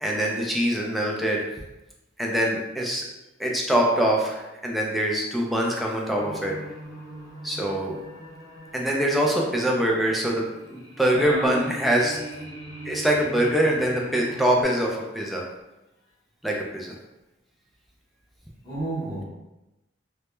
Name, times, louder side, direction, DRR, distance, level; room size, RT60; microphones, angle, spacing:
voice 1, 0.0-1.5 2.2-3.0 3.4-6.5 7.4-8.0 8.7-12.2 12.8-15.4 16.4-16.9, right 1 dB, ahead, -2 dB, 0.3 m, -24 dB
sound 1, 6.1-14.6, right 1 dB, 85° left, 0.7 m, -41 dB
voice 2, 11.1-11.6 18.6-19.2, right 1 dB, 20° left, -11 dB, 0.9 m, -29 dB
2.1 x 2.1 x 2.9 m, 0.98 s
head